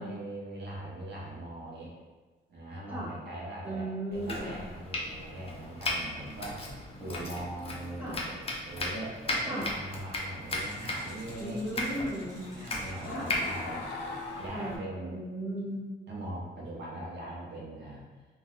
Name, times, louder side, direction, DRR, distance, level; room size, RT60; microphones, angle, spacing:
voice 1, 0.0-1.9 2.5-6.6 7.0-12.0 12.5-13.9 14.4-15.1 16.1-18.1, right 1 dB, 60° right, -4 dB, 0.8 m, -41 dB
voice 2, 3.6-4.6 8.0-8.2 9.4-9.7 11.4-12.4 13.1-13.3 14.5-15.8, right 1 dB, 10° right, -7 dB, 1.0 m, -36 dB
Domestic sounds home sounds, 4.1-14.8, left 2 dB, 30° left, 0.6 m, -37 dB
sound 1, 5.2-5.3 5.8-5.9 8.5-8.6 10.5-13.6, right 1 dB, 80° right, 1.2 m, -55 dB
sound 2, 9.5-9.6 10.5-10.8 11.4-11.5 12.5-12.6 13.0-14.5, left 3 dB, 75° left, 0.6 m, -40 dB
3.4 x 2.4 x 2.4 m, 1.3 s
cardioid pair, 90°, 20 cm